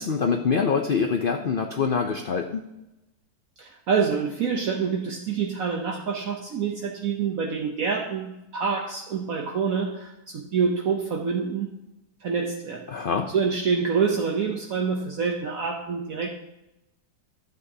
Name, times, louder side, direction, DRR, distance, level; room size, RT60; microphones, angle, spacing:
voice 1, 0.0-2.7 12.9-13.3, left 5 dB, 70° left, 5 dB, 0.5 m, -25 dB
voice 2, 3.6-11.7 12.2-12.9 13.3-16.3, right 5 dB, 60° right, 0 dB, 1.2 m, -26 dB
12.5 x 8.1 x 2.8 m, 0.92 s
omnidirectional pair, 1.7 m